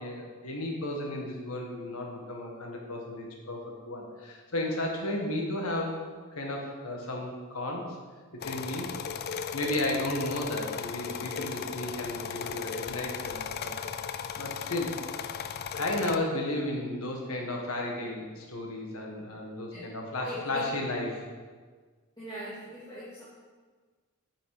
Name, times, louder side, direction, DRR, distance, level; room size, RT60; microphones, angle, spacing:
voice 1, 0.0-6.0 6.3-8.0 8.3-8.9 9.5-13.7 14.3-15.0 15.7-21.3, left 1 dB, 85° left, 0 dB, 1.8 m, -33 dB
sound 1, 8.4-16.2, left 7 dB, 45° left, 0.4 m, -36 dB
voice 2, 20.2-20.7 22.2-23.2, equal, 15° left, -11 dB, 2.2 m, -40 dB
8.8 x 6.4 x 5.0 m, 1.5 s
head